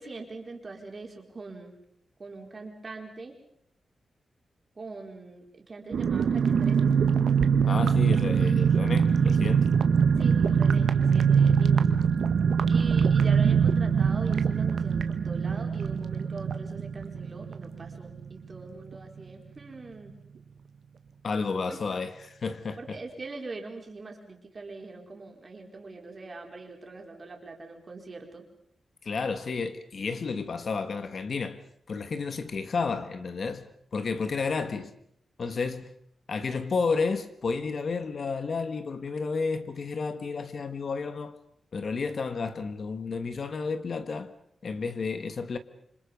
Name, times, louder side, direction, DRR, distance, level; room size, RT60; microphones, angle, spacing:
voice 1, 0.0-1.7 2.2-3.4 4.8-6.9 10.2-11.9 12.7-20.1 21.7-21.8 22.8-28.4, right 3 dB, 30° right, 4.4 m, -42 dB
sound 1, 5.9-18.3 18.5-18.6 18.9-19.2, right 6 dB, 70° right, 1.6 m, -23 dB
voice 2, 7.6-9.7 21.2-23.0 29.0-31.6 31.9-34.9 35.4-35.9 36.3-41.4 41.7-44.3 44.6-45.6, left 4 dB, 45° left, 1.3 m, -31 dB
28.0 x 26.0 x 5.3 m
wide cardioid pair, 175°, 0 cm